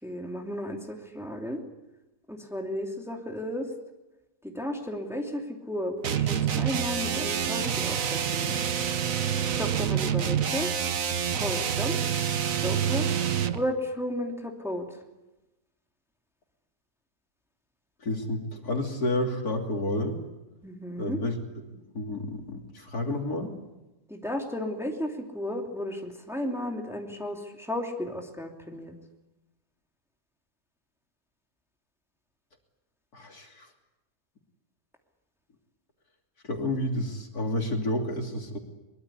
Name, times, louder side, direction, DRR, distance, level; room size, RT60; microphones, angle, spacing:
voice 1, 0.0-1.6 2.3-3.7 4.4-8.6 9.6-10.7 11.3-12.0 12.6-13.0 13.5-14.8 20.6-21.2 24.1-29.0, left 1 dB, ahead, 1 dB, 2.8 m, -33 dB
sound 1, 6.0-13.6, right 8 dB, 55° right, 1.4 m, -27 dB
voice 2, 18.0-20.2 21.0-21.4 21.7-23.5 33.1-33.7 36.4-38.6, left 1 dB, 65° left, 2 dB, 3.4 m, -30 dB
23.5 x 22.5 x 8.5 m, 1.0 s
omnidirectional pair, 1.7 m